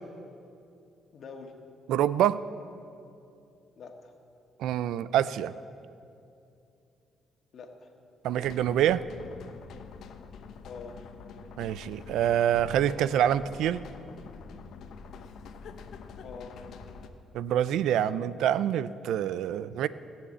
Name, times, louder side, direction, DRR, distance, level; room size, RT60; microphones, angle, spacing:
voice 1, 1.1-1.5 3.8-4.1 7.5-7.9 10.6-11.0 16.2-16.6 19.8-19.9, left 5 dB, 60° left, 3 dB, 1.7 m, -44 dB
voice 2, 1.9-2.5 4.6-5.5 8.2-9.0 11.6-13.8 17.3-19.9, right 10 dB, 85° right, 16 dB, 0.4 m, -26 dB
sound 1, 8.4-17.1, left 5 dB, 75° left, 0.9 m, -46 dB
18.0 x 7.2 x 8.5 m, 2.7 s
cardioid pair, 90°, 0 cm